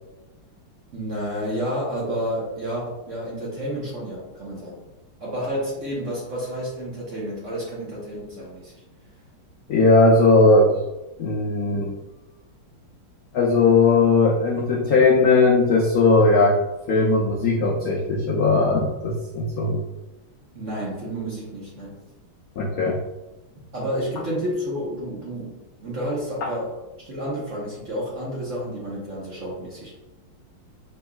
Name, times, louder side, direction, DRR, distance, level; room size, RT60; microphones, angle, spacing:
voice 1, 0.9-4.8 5.2-8.7 20.5-22.0 23.7-29.9, equal, 50° right, -5 dB, 1.0 m, -30 dB
voice 2, 9.7-10.7 11.2-11.9 13.3-16.6 16.9-19.8 22.6-23.0, left 3 dB, 75° left, -2 dB, 0.8 m, -18 dB
6.1 x 3.2 x 2.3 m, 1.1 s
omnidirectional pair, 2.3 m